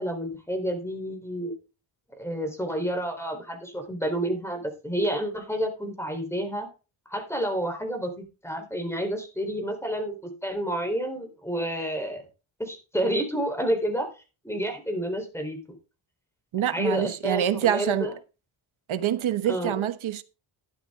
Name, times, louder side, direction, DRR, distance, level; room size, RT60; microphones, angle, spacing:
voice 1, 0.0-1.5 2.2-6.7 7.1-12.2 12.6-14.1 14.4-15.6 16.7-18.2 19.4-19.8, equal, 5° left, 3.9 m, -29 dB
voice 2, 16.5-18.1 18.9-20.2, right 10 dB, 70° right, 1.3 m, -26 dB
12.5 x 9.7 x 3.7 m
cardioid pair, 105°, 49 cm